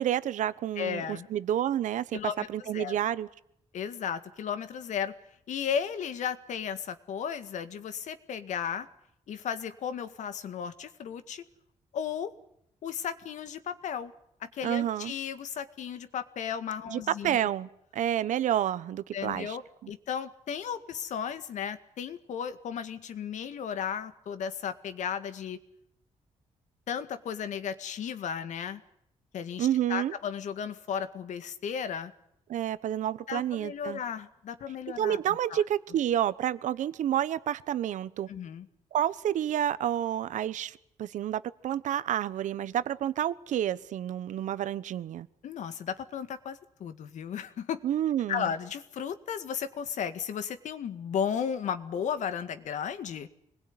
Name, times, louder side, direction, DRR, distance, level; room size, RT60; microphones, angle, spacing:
voice 1, 0.0-2.2 2.5-3.3 14.6-15.1 16.9-19.6 19.8-19.9 29.6-30.1 32.5-34.0 35.0-38.3 38.9-45.3 47.8-48.5, right 11 dB, 85° right, 1.1 m, -29 dB
voice 2, 0.8-1.3 2.1-3.0 3.7-5.1 5.5-8.9 9.3-11.4 11.9-12.3 12.8-14.1 14.4-17.4 19.1-25.6 26.9-28.8 29.3-32.1 33.3-35.2 35.5-35.6 38.3-38.7 45.4-47.8 48.3-53.3, left 8 dB, 80° left, 1.9 m, -34 dB
26.0 x 21.0 x 9.7 m
cardioid pair, 135°, 12 cm